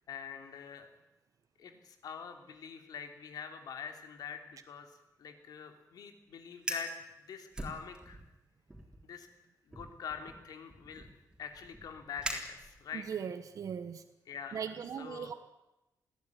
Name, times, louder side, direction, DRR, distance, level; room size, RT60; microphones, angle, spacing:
voice 1, 0.1-0.9 1.6-8.2 9.0-9.3 9.7-11.1 11.4-13.1 14.3-14.6 15.0-15.4, left 7 dB, 90° left, 6 dB, 3.1 m, -45 dB
Fire, 6.5-7.0 7.5-8.3 8.7-9.0 9.7-13.1, right 1 dB, 10° right, 3.4 m, -43 dB
voice 2, 13.1-14.0 14.5-15.3, right 7 dB, 60° right, 10 dB, 1.2 m, -38 dB
21.5 x 16.0 x 9.7 m, 0.95 s
wide cardioid pair, 160°, 6 cm